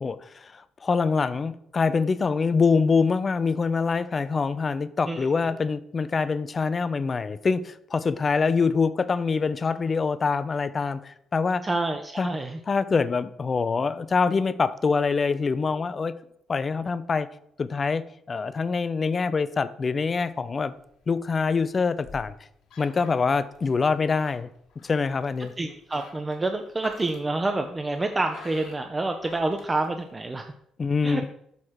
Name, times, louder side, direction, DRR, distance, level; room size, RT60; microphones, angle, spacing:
voice 1, 0.0-11.7 12.2-12.3 12.7-16.1 16.5-17.3 17.6-20.7 21.1-22.3 22.8-24.5 24.8-25.5 30.8-31.3, left 4 dB, 40° left, 0.4 m, -25 dB
voice 2, 11.6-12.6 25.6-30.5 31.0-31.2, right 2 dB, 25° right, 0.6 m, -28 dB
sound 1, 20.3-30.5, left 4 dB, 65° left, 1.2 m, -50 dB
6.6 x 4.1 x 4.7 m
figure-of-eight pair, 45°, 0 cm